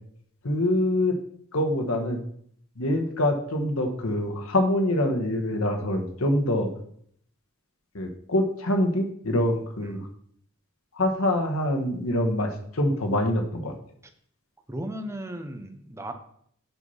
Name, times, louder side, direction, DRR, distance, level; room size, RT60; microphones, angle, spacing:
voice 1, 0.4-1.2 1.5-2.2 2.8-6.7 7.9-10.0 10.9-13.7, left 1 dB, 80° left, 4 dB, 1.3 m, -25 dB
voice 2, 14.7-16.1, right 1 dB, 15° right, 6 dB, 0.7 m, -36 dB
6.0 x 5.7 x 5.5 m, 0.66 s
head